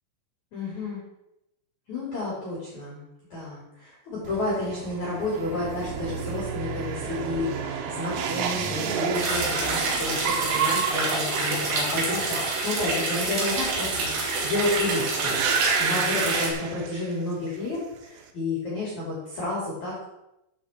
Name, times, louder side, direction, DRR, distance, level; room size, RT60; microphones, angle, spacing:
voice 1, 0.5-1.0 1.9-3.0 3.3-20.1, left 2 dB, 40° left, -6 dB, 3.9 m, -31 dB
sound 1, 4.2-17.3 17.6-18.2, right 7 dB, 90° right, 3.7 m, -31 dB
sound 2, 9.1-16.5, right 3 dB, 60° right, 4.7 m, -27 dB
14.0 x 7.3 x 4.5 m, 0.88 s
omnidirectional pair, 5.7 m